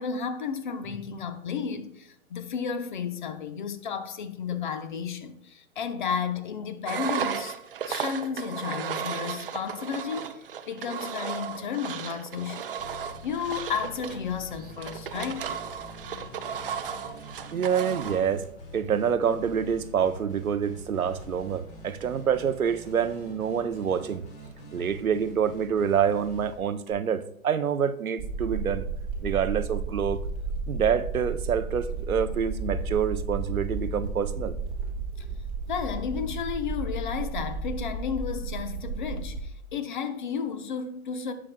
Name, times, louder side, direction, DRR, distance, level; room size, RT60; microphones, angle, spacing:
voice 1, 0.0-7.6 7.9-15.5 35.2-35.3 35.7-41.3, left 6 dB, 35° left, 0.8 m, -33 dB
Engine, 6.9-18.3, right 8 dB, 40° right, 0.6 m, -35 dB
sound 1, 12.8-26.9, left 2 dB, 15° left, 1.2 m, -45 dB
voice 2, 17.5-18.5 18.7-24.2 24.7-28.9 29.2-30.2 30.7-34.6, right 7 dB, 80° right, 0.8 m, -27 dB
sound 2, 28.2-39.4, right 3 dB, 15° right, 0.9 m, -33 dB
17.5 x 6.1 x 2.2 m
hypercardioid pair, 145°, 42 cm